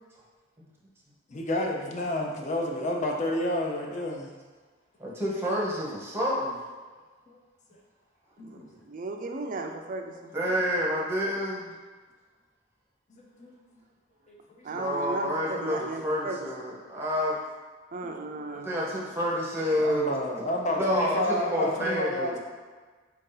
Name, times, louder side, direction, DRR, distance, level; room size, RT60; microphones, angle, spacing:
voice 1, 1.3-4.3 7.3-7.4 8.4-8.7 13.1-13.5 14.3-14.8 18.4-18.5 19.8-22.4, left 1 dB, 35° left, 0 dB, 0.6 m, -30 dB
voice 2, 5.0-6.6 10.3-11.7 14.7-17.4 18.6-20.2 20.8-22.4, equal, 10° right, -5 dB, 0.8 m, -29 dB
voice 3, 8.4-10.3 14.6-16.5 17.9-18.7, right 3 dB, 40° right, 3 dB, 0.4 m, -35 dB
4.5 x 2.7 x 3.8 m, 1.4 s
head